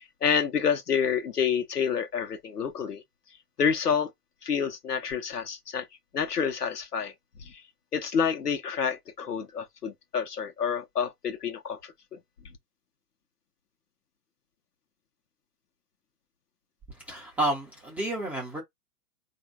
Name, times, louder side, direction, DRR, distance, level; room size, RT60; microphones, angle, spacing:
voice 1, 0.0-3.0 3.6-4.1 4.4-5.9 6.1-7.1 7.4-7.6 7.9-12.2, left 7 dB, 80° left, 1.0 m, -28 dB
voice 2, 17.0-18.6, right 1 dB, 5° right, 0.5 m, -30 dB
3.8 x 2.6 x 4.5 m
figure-of-eight pair, 115°, 46 cm